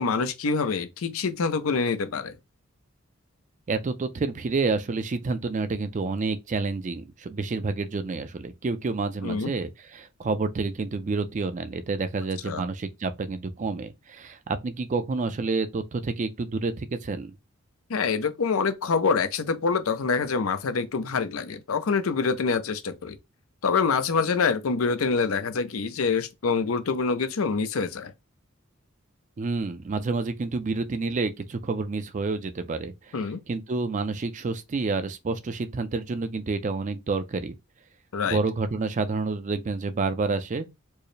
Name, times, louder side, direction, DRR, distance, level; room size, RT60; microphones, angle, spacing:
voice 1, 0.0-2.3 9.2-9.5 12.5-12.6 17.9-23.2 23.6-28.1 33.1-33.4 38.1-38.4, left 5 dB, 85° left, 0.6 m, -26 dB
voice 2, 3.7-17.3 29.4-37.5 38.3-40.7, right 3 dB, 35° right, 0.4 m, -29 dB
4.5 x 2.0 x 3.2 m
head